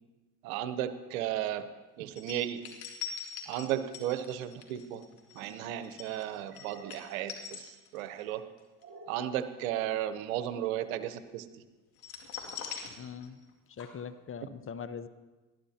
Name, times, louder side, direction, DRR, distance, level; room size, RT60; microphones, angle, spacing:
voice 1, 0.4-1.7 2.0-2.6 3.5-5.0 5.3-8.4 9.1-11.5, right 11 dB, 80° right, 12 dB, 0.9 m, -34 dB
sound 1, 2.2-8.2 8.6-8.8 12.0-13.5 13.8-13.9, left 7 dB, 65° left, 2.4 m, -43 dB
sound 2, 5.2-5.7 6.4-7.3 8.8-9.3, right 3 dB, 30° right, 3.4 m, -52 dB
voice 2, 13.0-13.4 13.7-15.1, left 6 dB, 30° left, 11 dB, 0.8 m, -41 dB
20.0 x 12.5 x 2.8 m, 1.2 s
hypercardioid pair, 70°, 40 cm